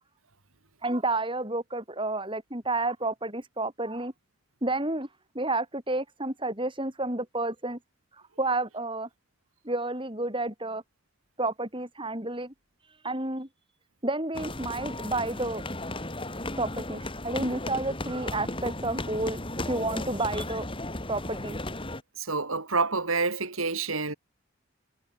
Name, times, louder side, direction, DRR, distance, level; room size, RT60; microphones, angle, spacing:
voice 1, 0.8-4.1 4.6-5.1 5.3-7.8 8.4-9.1 9.6-10.8 11.4-12.5 13.0-13.5 14.0-15.6 16.6-19.4 19.6-20.7 21.1-21.6, right 2 dB, 25° right, 4.8 m, -30 dB
sound 1, 14.3-22.0, left 1 dB, 25° left, 4.3 m, -35 dB
voice 2, 22.2-24.1, right 4 dB, 75° right, 4.4 m, -28 dB
head